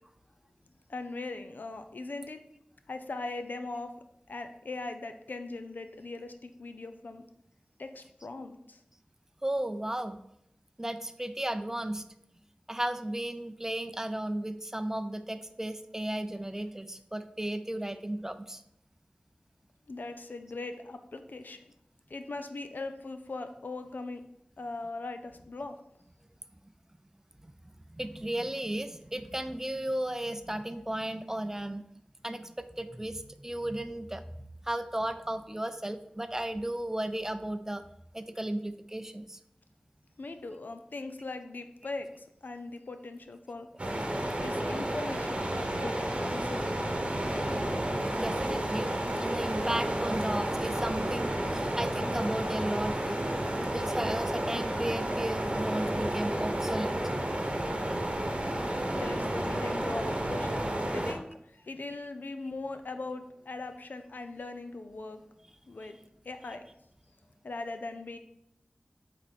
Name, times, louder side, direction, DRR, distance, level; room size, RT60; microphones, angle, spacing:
voice 1, 0.9-2.4 2.9-4.0 4.3-7.3 7.8-8.8 19.9-21.7 22.1-24.2 24.6-25.8 40.2-43.7 44.4-46.8 58.9-60.6 60.9-65.2 65.7-66.0 66.2-66.7 67.4-68.2, left 3 dB, 80° left, 8 dB, 0.6 m, -40 dB
voice 2, 9.4-10.2 10.8-12.0 12.7-18.6 27.6-31.8 32.2-37.8 38.1-39.4 48.2-53.3 53.7-57.0, right 1 dB, 15° right, 10 dB, 0.5 m, -35 dB
sound 1, 43.8-61.1, right 1 dB, 40° right, 1.1 m, -31 dB
7.8 x 4.3 x 4.2 m, 0.79 s
wide cardioid pair, 60°, 3 cm